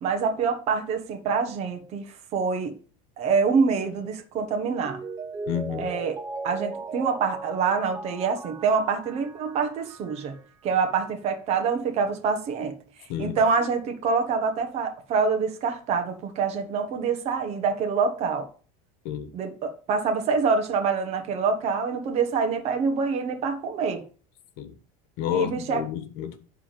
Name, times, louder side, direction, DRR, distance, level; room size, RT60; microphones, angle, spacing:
voice 1, 0.0-2.8 3.2-5.0 5.8-6.2 6.4-18.5 19.3-24.0 25.3-25.8, right 5 dB, 35° right, 1.4 m, -26 dB
Mallet percussion, 4.8-10.4 10.7-10.8, right 4 dB, 15° right, 0.5 m, -37 dB
voice 2, 5.5-5.9 13.1-13.4 19.0-19.3 24.6-24.7 25.2-26.4, left 10 dB, 60° left, 1.4 m, -30 dB
10.0 x 3.7 x 7.2 m
cardioid pair, 165°, 18 cm